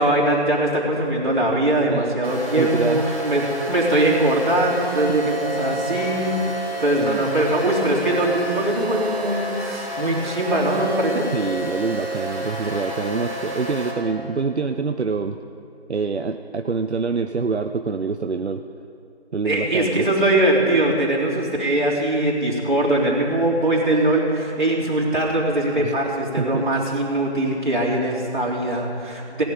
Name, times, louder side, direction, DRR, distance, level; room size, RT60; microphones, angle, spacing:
voice 1, 0.0-11.3 19.4-29.4, right 1 dB, 45° right, -5 dB, 3.3 m, -21 dB
sound 1, 2.2-13.9, right 1 dB, 15° right, 2.7 m, -30 dB
voice 2, 2.6-3.1 5.0-5.3 6.9-7.3 11.3-15.4 15.9-18.6 19.3-20.0 25.8-25.9 26.4-26.7, right 4 dB, 80° right, 7 dB, 0.6 m, -26 dB
17.5 x 10.5 x 5.3 m, 2.6 s
figure-of-eight pair, 175°, 33 cm